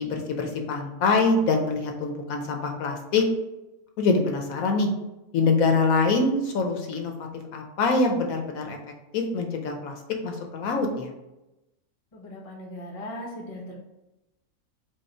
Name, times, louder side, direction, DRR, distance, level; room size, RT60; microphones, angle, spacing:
voice 1, 0.0-3.2 4.0-4.9 5.3-8.8 9.1-10.0 10.2-11.1, left 3 dB, 75° left, 3 dB, 1.1 m, -24 dB
voice 2, 12.1-13.8, left 1 dB, 30° left, 0 dB, 0.7 m, -38 dB
4.8 x 2.4 x 4.3 m, 0.96 s
omnidirectional pair, 1.5 m